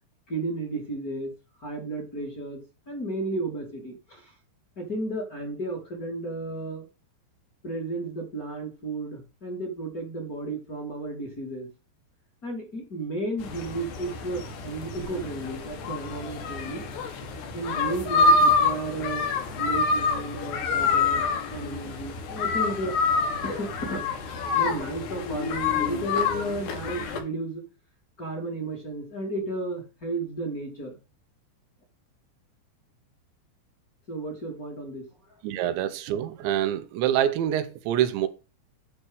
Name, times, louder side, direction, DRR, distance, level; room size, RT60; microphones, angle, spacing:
voice 1, 0.3-1.3 1.6-2.6 2.9-4.3 4.8-6.9 7.6-11.7 12.4-17.1 17.5-22.9 23.4-27.6 28.2-30.9 34.1-35.0, right 2 dB, 25° left, 2.7 m, -33 dB
sound 1, 13.4-27.2, left 4 dB, 70° left, 3.6 m, -27 dB
voice 2, 35.4-38.3, right 11 dB, 90° right, 3.2 m, -26 dB
9.7 x 4.2 x 6.3 m
omnidirectional pair, 5.1 m